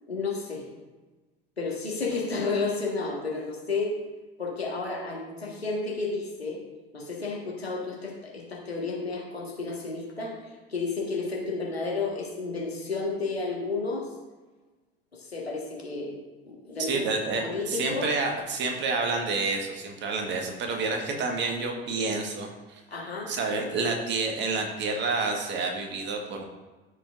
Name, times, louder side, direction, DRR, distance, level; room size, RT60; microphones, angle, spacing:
voice 1, 0.1-0.6 1.6-3.9 4.4-6.6 6.9-14.1 15.1-16.1 16.5-17.0 17.4-18.1 22.9-23.3, left 3 dB, 85° left, -2 dB, 1.7 m, -32 dB
voice 2, 16.8-22.8 23.3-26.4, right 3 dB, 35° right, 2 dB, 1.5 m, -29 dB
14.0 x 5.0 x 2.6 m, 1.2 s
figure-of-eight pair, 75°, 30 cm